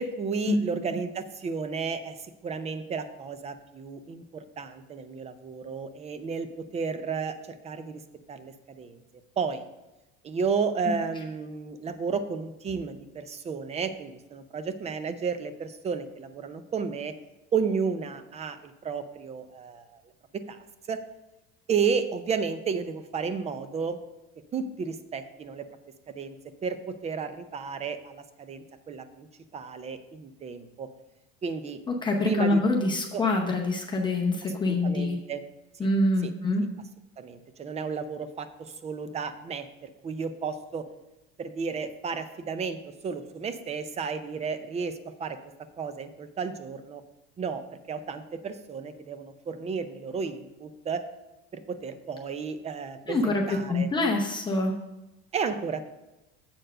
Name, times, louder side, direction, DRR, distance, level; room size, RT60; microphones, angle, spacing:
voice 1, 0.0-8.0 8.3-9.0 9.4-9.6 10.2-17.1 17.5-20.0 20.3-20.6 20.9-21.0 21.7-24.0 24.5-25.6 26.1-26.4 26.6-30.9 31.4-31.8 32.2-32.6 33.1-33.2 34.7-35.4 35.8-35.9 36.2-36.3 37.2-40.8 41.4-45.4 45.8-47.0 47.4-51.0 51.5-53.9 55.3-55.9, right 5 dB, 20° right, 11 dB, 0.5 m, -32 dB
voice 2, 32.0-35.2 35.8-36.6 53.1-54.8, left 2 dB, 15° left, 0 dB, 0.7 m, -25 dB
7.6 x 4.5 x 6.5 m, 0.99 s
cardioid pair, 145°, 29 cm